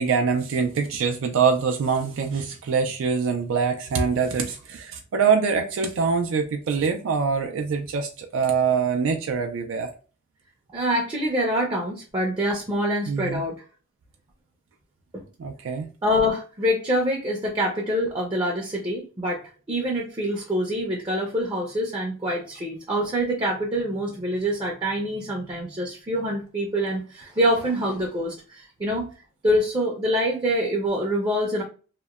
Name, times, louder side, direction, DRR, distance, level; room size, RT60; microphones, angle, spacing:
voice 1, 0.0-9.9 13.1-13.4 15.4-15.9, right 5 dB, 80° right, 0.4 m, -24 dB
voice 2, 10.7-13.5 15.1-15.2 16.0-29.1 29.4-31.6, equal, 20° right, 0.5 m, -25 dB
2.8 x 2.1 x 2.3 m
head